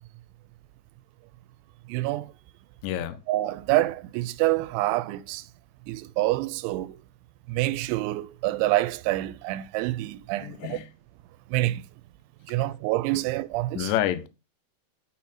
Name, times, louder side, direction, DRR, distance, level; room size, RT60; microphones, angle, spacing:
voice 1, 1.9-2.3 3.3-5.4 5.9-7.0 7.5-10.8 11.5-11.8 12.5-13.9, right 17 dB, 90° right, 2.9 m, -27 dB
voice 2, 2.8-3.2 10.4-10.9 13.7-14.3, left 11 dB, 85° left, 3.0 m, -28 dB
12.0 x 4.2 x 4.2 m
omnidirectional pair, 5.3 m